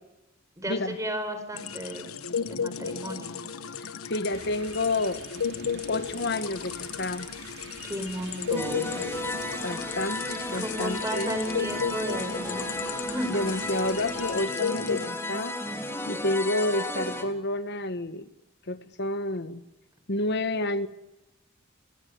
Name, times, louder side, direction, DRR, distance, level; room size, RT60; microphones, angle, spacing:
voice 1, 0.6-2.1 2.5-3.3 7.8-9.0 10.5-13.5, right 1 dB, 15° right, 8 dB, 5.0 m, -34 dB
sound 1, 1.5-15.1, left 6 dB, 85° left, 1.2 m, -34 dB
voice 2, 3.8-5.2 5.9-7.3 9.6-11.3 13.3-15.6 16.1-18.3 18.7-19.6 20.1-20.9, left 2 dB, 50° left, 11 dB, 1.4 m, -29 dB
sound 2, 4.3-14.5, right 5 dB, 55° right, 2.4 m, -48 dB
sound 3, 8.6-17.2, left 1 dB, 10° left, 3.6 m, -34 dB
28.5 x 20.5 x 9.6 m, 0.99 s
head